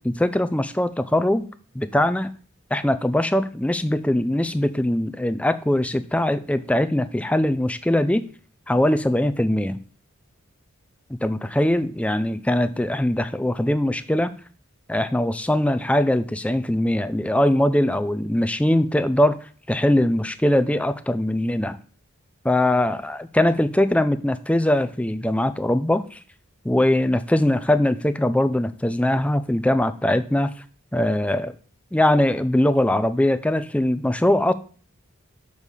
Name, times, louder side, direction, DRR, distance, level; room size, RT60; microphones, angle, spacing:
voice 1, 0.0-1.5 1.8-2.3 2.7-8.3 8.7-9.8 11.2-14.3 14.9-19.4 19.7-21.8 22.4-26.2 26.6-30.5 30.9-31.5 31.9-34.5, left 1 dB, 5° left, 12 dB, 0.4 m, -21 dB
6.8 x 5.5 x 6.4 m, 0.41 s
head